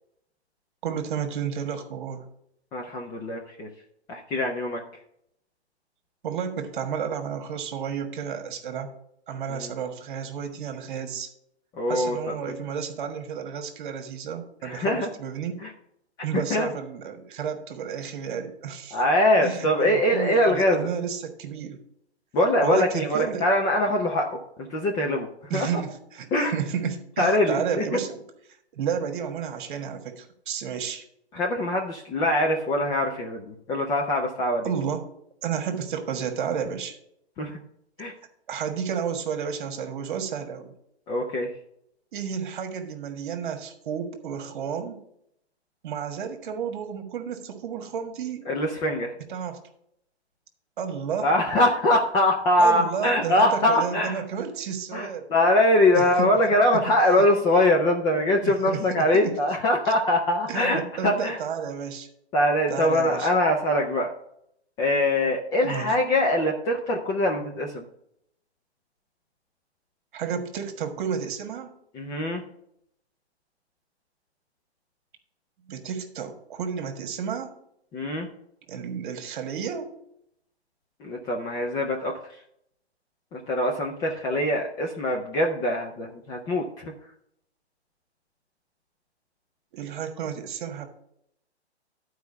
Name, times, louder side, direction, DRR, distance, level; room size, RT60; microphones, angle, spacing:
voice 1, 0.8-2.2 6.2-8.9 9.3-11.3 11.9-15.6 16.2-19.0 19.4-21.8 22.6-23.5 25.5-28.2 28.7-31.1 34.6-35.1 35.4-37.0 38.5-40.7 42.1-45.0 45.8-48.5 49.3-49.6 50.8-51.3 52.6-55.3 55.9-56.4 56.7-57.2 58.4-59.4 59.8-59.9 60.5-62.1 62.7-63.3 65.6-65.9 70.1-71.7 75.7-77.5 78.7-79.9 89.7-90.9, right 7 dB, 50° right, 7 dB, 1.5 m, -31 dB
voice 2, 2.7-3.7 4.1-4.8 9.5-9.7 11.8-12.3 14.6-15.1 15.6-15.7 16.5-16.7 18.9-20.9 22.3-25.3 25.5-25.7 26.3-26.5 27.2-27.8 31.3-34.7 37.4-37.6 38.0-38.1 41.1-41.5 48.5-49.1 51.2-54.2 54.9-61.4 62.3-64.1 64.8-67.8 71.9-72.4 77.9-78.3 81.0-82.1 83.3-86.9, left 1 dB, 10° left, 1 dB, 0.5 m, -23 dB
11.5 x 4.7 x 5.5 m, 0.74 s
hypercardioid pair, 135°, 33 cm